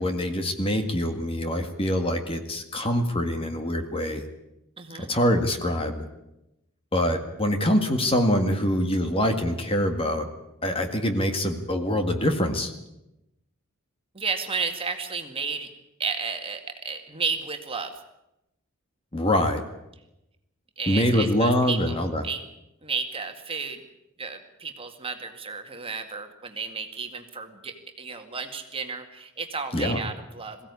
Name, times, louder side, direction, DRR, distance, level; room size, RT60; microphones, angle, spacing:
voice 1, 0.0-4.2 5.0-6.1 6.9-10.3 10.6-12.7 19.1-19.6 20.9-22.3 29.7-30.0, equal, 25° left, 6 dB, 1.9 m, -24 dB
voice 2, 4.8-5.1 14.1-15.7 16.0-17.9 20.8-22.4 22.8-23.8 24.2-30.6, right 5 dB, 25° right, 5 dB, 2.1 m, -32 dB
22.0 x 16.5 x 9.7 m, 0.90 s
head